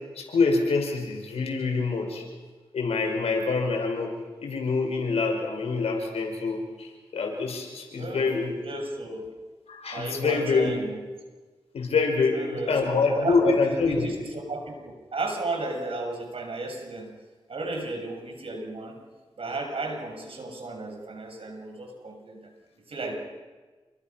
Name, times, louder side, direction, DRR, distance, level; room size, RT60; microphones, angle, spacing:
voice 1, 0.2-2.2 2.7-4.1 4.4-8.5 9.7-10.7 11.7-14.1, left 4 dB, 90° left, 2 dB, 5.6 m, -25 dB
voice 2, 8.0-9.3 9.9-11.0 12.3-13.4 13.6-17.1 17.5-19.0 19.4-22.5 22.9-23.2, right 2 dB, 65° right, 3 dB, 6.5 m, -34 dB
28.5 x 24.0 x 5.9 m, 1.3 s
cardioid pair, 50°, 10 cm